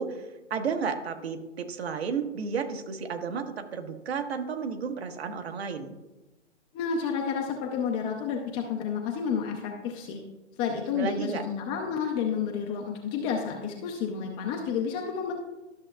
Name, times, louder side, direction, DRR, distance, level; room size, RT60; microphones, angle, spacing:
voice 1, 0.0-5.9 10.9-11.4, right 5 dB, 60° right, 6 dB, 1.3 m, -32 dB
voice 2, 6.7-10.2 10.6-15.3, left 6 dB, 15° left, 1 dB, 0.5 m, -30 dB
13.0 x 6.5 x 2.3 m, 1.1 s
hypercardioid pair, 130°, 36 cm